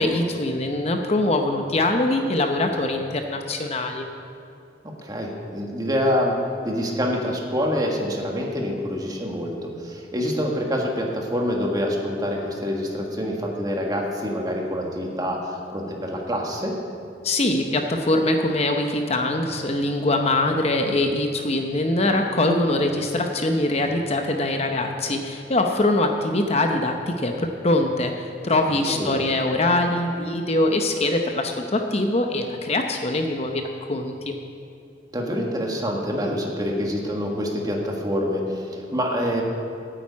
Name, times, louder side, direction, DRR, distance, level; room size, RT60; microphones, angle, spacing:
voice 1, 0.0-4.1 17.2-33.6 33.9-34.4, left 2 dB, 35° left, 4 dB, 0.8 m, -23 dB
voice 2, 5.0-6.3 6.6-16.7 28.9-29.2 35.1-39.4, equal, 20° right, 0 dB, 1.7 m, -26 dB
9.1 x 8.8 x 8.5 m, 2.6 s
head